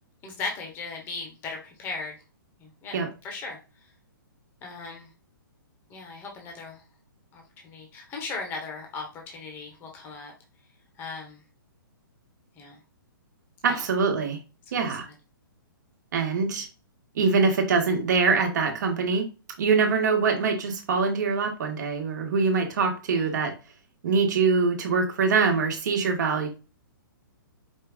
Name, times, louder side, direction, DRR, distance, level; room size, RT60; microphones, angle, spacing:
voice 1, 0.2-2.1 2.6-3.0 3.2-3.6 4.6-5.1 5.9-6.8 7.3-10.3 11.0-11.4 12.5-12.8 13.6-13.9 14.7-15.1 23.1-23.3, left 4 dB, 15° left, 1 dB, 1.1 m, -37 dB
voice 2, 13.6-14.4 14.7-15.0 16.1-16.7 17.1-19.3 19.6-23.5 24.0-26.5, right 4 dB, 55° right, 3 dB, 1.3 m, -24 dB
5.0 x 2.3 x 3.5 m, 0.31 s
hypercardioid pair, 160°, 12 cm